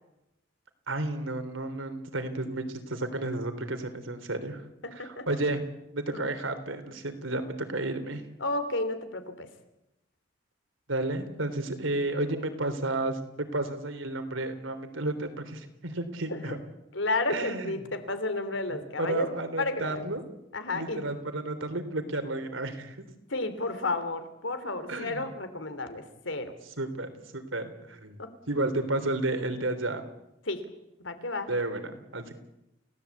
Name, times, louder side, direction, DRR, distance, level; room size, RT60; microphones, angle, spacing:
voice 1, 0.9-4.6 4.9-5.6 5.9-8.2 10.9-16.6 17.3-17.8 18.7-20.2 20.7-23.1 24.9-25.3 26.8-28.2 28.5-30.0 31.5-32.3, right 2 dB, 85° right, 8 dB, 3.6 m, -32 dB
voice 2, 4.8-5.3 6.1-6.3 8.4-9.5 16.3-16.5 16.9-19.3 19.6-20.1 20.5-21.0 23.3-26.5 28.2-28.3 28.6-28.7 30.5-30.6 31.0-31.5, left 2 dB, 75° left, 10 dB, 3.3 m, -32 dB
29.5 x 17.5 x 8.4 m, 0.90 s
head